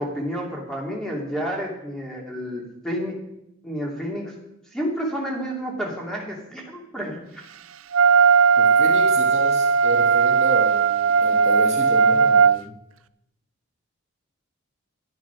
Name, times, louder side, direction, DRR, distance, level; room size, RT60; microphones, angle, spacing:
voice 1, 0.0-3.1 3.6-4.3 4.7-7.4, equal, ahead, -2 dB, 2.7 m, -30 dB
Wind instrument woodwind instrument, 7.9-12.6, right 5 dB, 70° right, 0.4 m, -17 dB
voice 2, 8.6-12.7, right 1 dB, 30° right, -1 dB, 1.5 m, -31 dB
11.5 x 9.4 x 6.1 m, 0.84 s
head